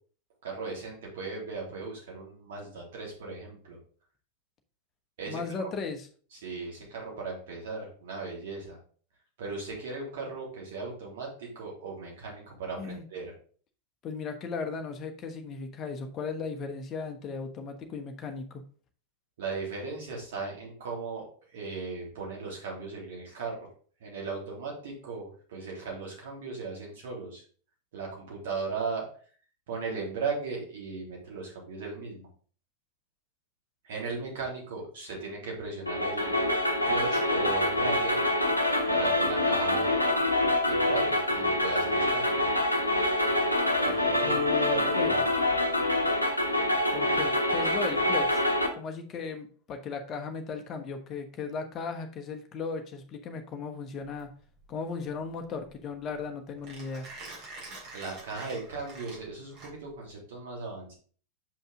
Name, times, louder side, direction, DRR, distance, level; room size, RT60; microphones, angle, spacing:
voice 1, 0.4-3.8 5.2-5.4 6.3-8.8 9.4-13.3 19.4-23.7 24.0-27.4 27.9-29.1 29.7-32.3 33.8-36.3 36.9-38.2 38.9-40.1 40.7-42.5 43.7-45.3 57.9-60.9, right 4 dB, 55° right, -2 dB, 3.4 m, -37 dB
voice 2, 5.3-6.1 12.8-13.0 14.0-18.6 44.2-45.2 46.9-48.4 48.7-54.3 54.7-57.1, left 5 dB, 30° left, 5 dB, 1.2 m, -36 dB
sound 1, 35.9-48.7, left 1 dB, 85° left, 1.0 m, -26 dB
Mechanisms, 54.0-60.1, right 2 dB, 35° right, 3.1 m, -47 dB
7.3 x 5.5 x 3.7 m, 0.43 s
figure-of-eight pair, 90°, 0 cm